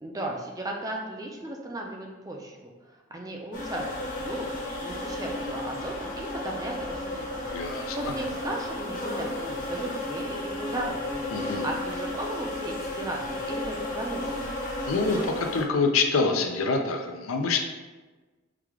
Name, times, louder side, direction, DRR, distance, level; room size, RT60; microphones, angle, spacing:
voice 1, 0.0-11.2 11.6-14.5, right 1 dB, 15° right, 0 dB, 0.4 m, -36 dB
sound 1, 3.5-15.6, left 1 dB, 40° left, 0.9 m, -33 dB
voice 2, 7.5-8.0 11.3-11.7 14.9-17.6, left 4 dB, 90° left, 4 dB, 0.5 m, -26 dB
4.8 x 2.4 x 3.5 m, 1.2 s
head